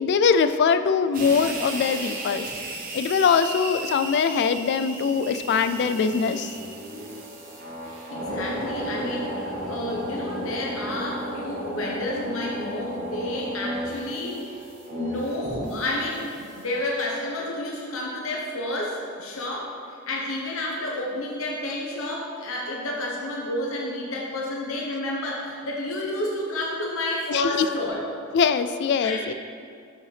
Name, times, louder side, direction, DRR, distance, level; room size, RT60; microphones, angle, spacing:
voice 1, 0.0-2.5 2.9-6.6 27.3-27.7 28.3-29.3, left 6 dB, 55° left, 11 dB, 0.3 m, -22 dB
sound 1, 1.1-16.8, right 1 dB, 40° right, 1.1 m, -34 dB
voice 2, 8.1-14.4 14.9-28.1 29.0-29.3, left 1 dB, 70° left, -2 dB, 1.0 m, -30 dB
7.5 x 5.6 x 3.3 m, 2.4 s
head